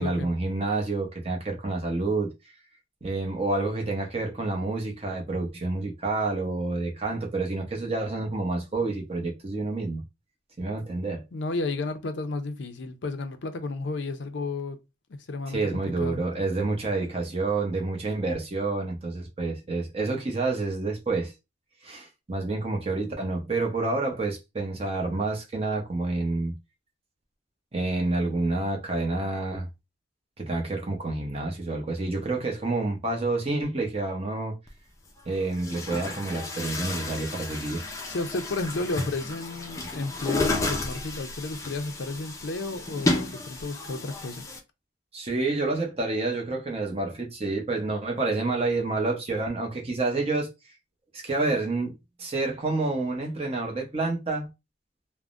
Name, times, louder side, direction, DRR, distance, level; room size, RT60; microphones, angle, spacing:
voice 1, 0.0-2.3 3.0-10.0 10.6-11.2 15.5-21.3 21.8-26.5 27.7-29.7 30.4-34.6 35.3-37.8 45.1-50.5 51.1-54.5, right 3 dB, 30° right, 0.7 m, -28 dB
voice 2, 11.3-14.8 15.3-16.2 38.1-44.4, left 3 dB, 75° left, 0.5 m, -32 dB
Chatter / Gurgling / Tap, 34.7-34.8 35.5-44.6, left 2 dB, 15° left, 0.4 m, -32 dB
3.4 x 2.1 x 2.5 m
head